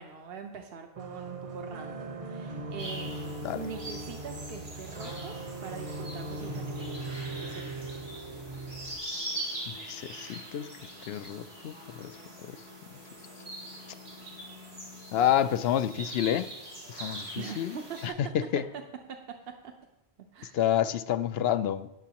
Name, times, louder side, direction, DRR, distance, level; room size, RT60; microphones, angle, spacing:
voice 1, 0.0-3.1 3.5-5.4 5.6-7.9 17.4-18.2 19.6-19.7 20.3-20.6, right 6 dB, 70° right, 1.1 m, -43 dB
sound 1, 1.0-9.0, right 2 dB, 35° right, 0.8 m, -39 dB
sound 2, 2.8-18.1, right 1 dB, 85° right, 4.2 m, -42 dB
voice 2, 9.7-10.7 11.1-12.1 12.5-12.6 15.1-16.5 16.9-17.8 18.0-18.3 18.5-18.7 20.5-21.9, left 10 dB, 75° left, 0.8 m, -29 dB
18.5 x 7.0 x 2.9 m
omnidirectional pair, 1.0 m